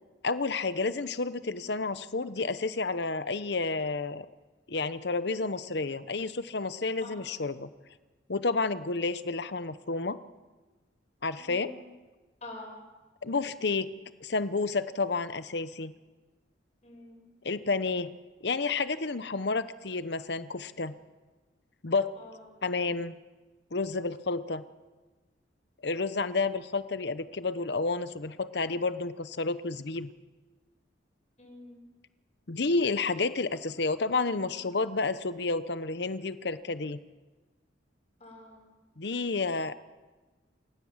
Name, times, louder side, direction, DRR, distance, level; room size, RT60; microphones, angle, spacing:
voice 1, 0.2-4.3 4.7-7.7 8.3-10.2 11.2-11.7 13.2-13.9 14.2-15.9 17.4-18.1 18.4-20.9 21.8-22.1 22.6-23.1 23.7-24.6 25.8-30.1 32.5-37.0 39.0-39.8, left 3 dB, 60° left, 13 dB, 0.9 m, -30 dB
voice 2, 11.4-11.8 12.4-12.7 16.8-17.2 22.2-22.3 31.4-31.8 38.2-38.6, left 2 dB, 35° left, -1 dB, 6.9 m, -46 dB
28.5 x 16.5 x 7.4 m, 1.2 s
head